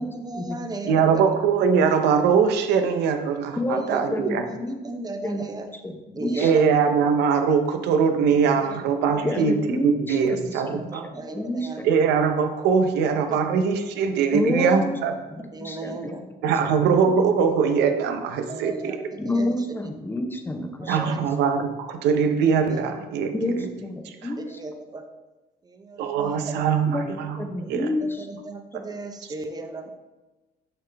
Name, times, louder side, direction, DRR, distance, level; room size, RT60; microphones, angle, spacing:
voice 1, 0.0-1.3 3.7-4.1 4.5-5.7 6.2-6.8 8.6-8.8 9.1-9.5 10.6-11.8 13.3-13.4 15.5-16.2 18.5-19.5 20.8-21.3 22.7-22.8 24.5-25.0 25.6-26.6 28.0-29.9, right 3 dB, 25° right, 7 dB, 0.7 m, -36 dB
voice 2, 0.9-4.4 6.4-11.1 11.8-15.1 16.4-19.0 20.9-23.3 26.0-27.4 27.7-27.9, right 6 dB, 85° right, 7 dB, 0.7 m, -22 dB
voice 3, 3.6-4.8 5.2-5.4 5.7-6.5 9.2-11.9 14.3-14.9 15.3-16.1 16.6-16.7 17.1-17.2 19.2-21.2 23.3-24.6 26.8-27.1 27.4-28.3, left 1 dB, 15° left, 5 dB, 0.7 m, -29 dB
6.8 x 5.7 x 3.4 m, 1.1 s
cardioid pair, 110°, 17 cm